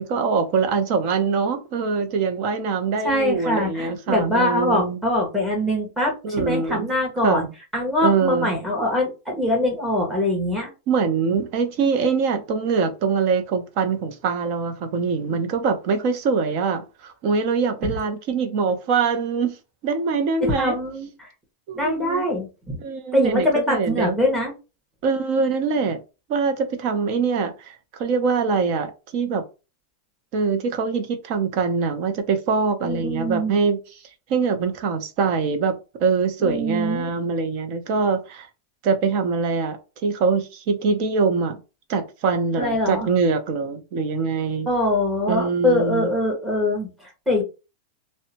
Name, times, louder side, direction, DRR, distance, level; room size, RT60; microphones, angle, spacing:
voice 1, 0.0-5.0 6.2-6.9 7.2-7.5 8.0-8.5 10.9-19.6 19.8-20.8 21.7-22.3 22.8-24.2 25.0-26.0 26.3-29.4 30.3-33.8 34.3-35.7 36.0-38.5 38.8-41.6 41.9-44.7 45.3-46.1, right 5 dB, 45° right, 0.6 m, -23 dB
voice 2, 3.0-7.4 7.7-10.7 20.4-21.3 21.8-22.8 23.1-24.5 32.8-33.5 36.4-37.1 42.6-43.1 44.7-47.4, left 1 dB, 5° right, 1.1 m, -23 dB
2.7 x 2.1 x 2.8 m
supercardioid pair, 160°, 0 cm